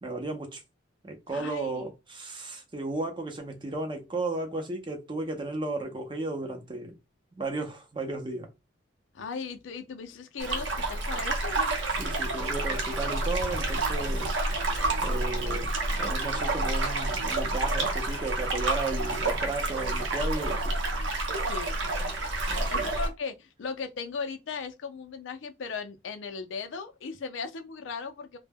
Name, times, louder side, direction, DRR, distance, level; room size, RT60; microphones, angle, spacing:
voice 1, 0.0-0.6 1.0-6.9 7.4-8.5 12.0-14.3 15.0-15.7 16.0-20.8 22.5-22.9, right 2 dB, 25° right, 0.5 m, -34 dB
voice 2, 1.3-1.8 9.1-11.6 21.4-22.2 22.7-28.4, left 5 dB, 85° left, 0.4 m, -37 dB
sound 1, 10.4-23.1, right 2 dB, 85° right, 0.7 m, -29 dB
2.1 x 2.1 x 3.3 m
head